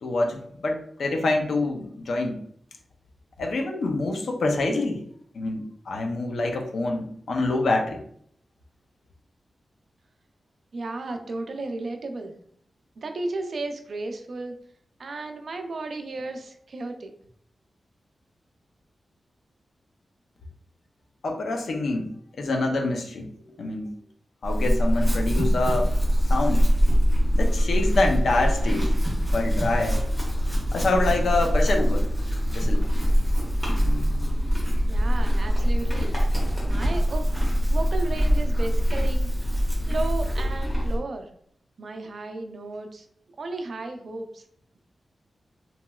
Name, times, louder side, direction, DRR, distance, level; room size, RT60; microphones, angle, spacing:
voice 1, 0.0-2.4 3.4-5.0 5.3-8.0 21.2-22.1 22.4-23.3 23.6-23.9 24.4-25.9 26.3-26.6 27.3-28.8 29.3-30.0 30.7-32.1 32.5-32.8 33.7-34.4, left 2 dB, 80° left, 2 dB, 0.5 m, -26 dB
voice 2, 10.7-12.3 13.0-14.6 15.0-17.1 34.9-36.1 36.6-37.3 37.7-39.3 39.9-41.3 41.8-43.1 43.4-44.4, right 2 dB, 55° right, 5 dB, 0.3 m, -34 dB
Chewing mastication / Livestock farm animals working animals, 24.4-41.0, equal, 5° left, 1.0 m, -23 dB
2.9 x 2.8 x 2.3 m, 0.65 s
wide cardioid pair, 150°, 0 cm